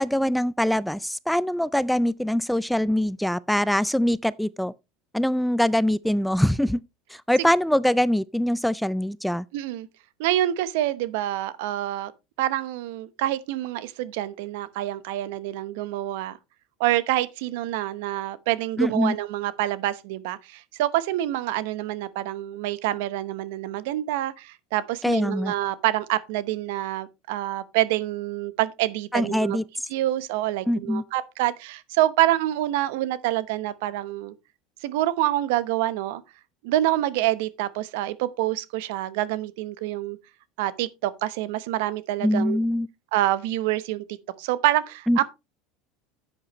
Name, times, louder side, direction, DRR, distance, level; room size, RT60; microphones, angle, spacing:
voice 1, 0.0-4.7 5.1-6.8 7.1-9.5 18.8-19.2 25.0-25.5 29.1-29.6 30.7-31.0 42.2-42.9 45.1-45.2, equal, ahead, 0.4 m, -23 dB
voice 2, 9.5-9.9 10.2-12.1 12.4-16.4 16.8-29.6 29.9-34.3 34.8-36.2 36.6-40.2 40.6-42.6 43.1-45.2, right 14 dB, 75° right, 0.9 m, -26 dB
10.5 x 8.4 x 3.0 m
supercardioid pair, 100°, 0 cm